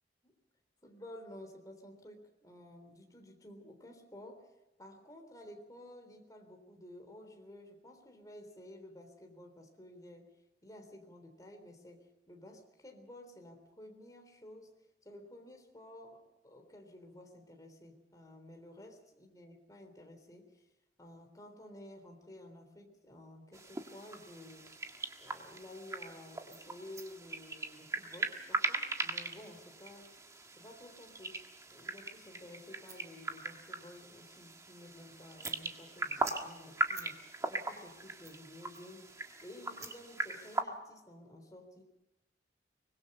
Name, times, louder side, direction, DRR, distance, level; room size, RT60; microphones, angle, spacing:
voice 1, 0.8-4.5 4.8-10.3 10.6-14.7 15.0-20.7 21.0-24.7 25.2-30.1 30.6-41.8, left 1 dB, 20° left, 4 dB, 3.7 m, -53 dB
sound 1, 23.5-40.6, right 2 dB, 15° right, 1.6 m, -40 dB
24.5 x 21.0 x 5.6 m, 0.97 s
head